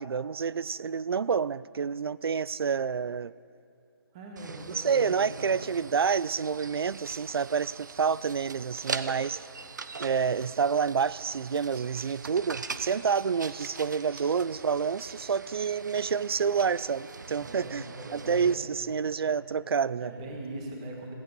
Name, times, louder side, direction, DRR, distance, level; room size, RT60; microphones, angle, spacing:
voice 1, 0.0-3.3 4.8-9.4 10.0-17.8 18.1-20.1, right 6 dB, 75° right, 0.4 m, -28 dB
voice 2, 4.1-5.7 17.3-18.8 19.2-19.4 20.0-21.1, right 1 dB, 15° right, 1.5 m, -41 dB
sound 1, 4.4-18.5, right 4 dB, 50° right, 0.7 m, -42 dB
17.0 x 15.5 x 5.3 m
hypercardioid pair, 175°, 13 cm